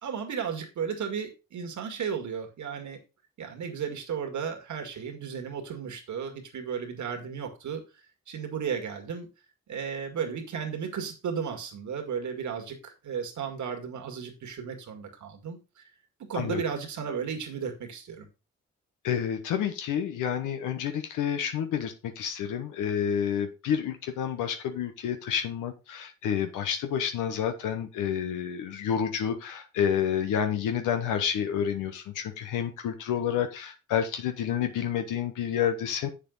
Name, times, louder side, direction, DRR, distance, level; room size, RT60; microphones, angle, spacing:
voice 1, 0.0-3.0 3.4-7.8 8.3-9.3 9.7-15.8 16.2-18.3, right 7 dB, 70° right, 2.1 m, -34 dB
voice 2, 19.0-36.1, left 8 dB, 90° left, 1.0 m, -29 dB
7.3 x 6.7 x 3.9 m
supercardioid pair, 50°, 30 cm